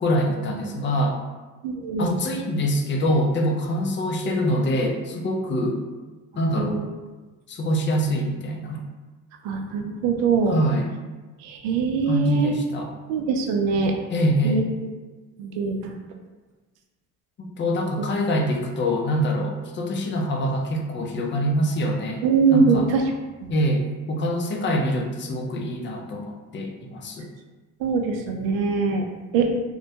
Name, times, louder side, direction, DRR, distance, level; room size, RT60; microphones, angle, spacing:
voice 1, 0.0-1.2 2.0-5.8 6.4-6.8 7.5-8.8 10.5-10.9 12.1-12.9 14.1-14.6 17.4-22.2 22.5-22.9 23.5-27.3, equal, 25° left, 2 dB, 0.4 m, -24 dB
voice 2, 1.6-2.1 6.5-6.9 9.4-10.6 11.4-12.5 13.1-14.0 14.4-14.9 15.4-15.9 22.2-23.0 23.4-23.5 27.8-29.1 29.3-29.5, right 5 dB, 75° right, 3 dB, 0.6 m, -23 dB
2.2 x 2.1 x 2.7 m, 1.2 s
hypercardioid pair, 70°, 44 cm